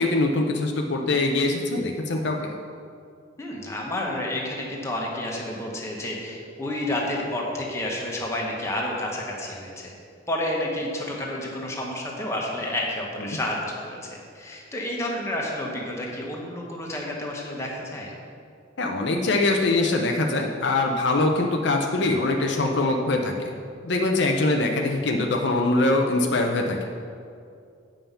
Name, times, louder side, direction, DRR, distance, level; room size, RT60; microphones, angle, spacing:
voice 1, 0.0-2.6 13.3-13.4 18.8-23.5 23.8-26.8, left 2 dB, 65° left, 2 dB, 0.6 m, -23 dB
voice 2, 3.4-9.9 10.3-14.0 14.3-18.1, left 1 dB, 15° left, -2 dB, 1.3 m, -30 dB
8.6 x 5.6 x 5.6 m, 2.4 s
head